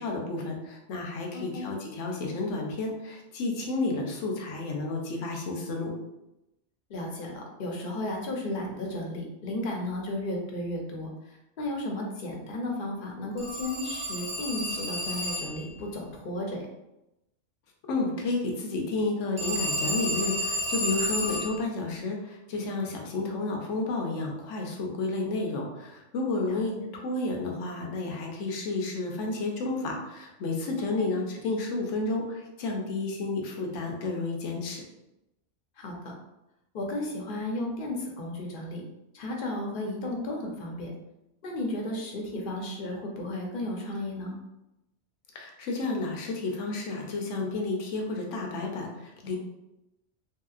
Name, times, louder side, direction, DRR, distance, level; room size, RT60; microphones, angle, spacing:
voice 1, 0.0-5.9 17.9-34.8 45.3-49.4, left 3 dB, 85° left, 1 dB, 1.0 m, -31 dB
voice 2, 1.3-1.6 6.9-16.7 26.5-26.9 31.0-31.1 35.8-36.1 36.7-38.8 39.1-40.9 41.4-44.4, left 1 dB, 55° left, 0 dB, 0.8 m, -34 dB
Telephone, 13.4-15.7 19.4-21.6, equal, 15° right, 1.0 m, -31 dB
3.1 x 2.8 x 2.4 m, 0.91 s
omnidirectional pair, 1.2 m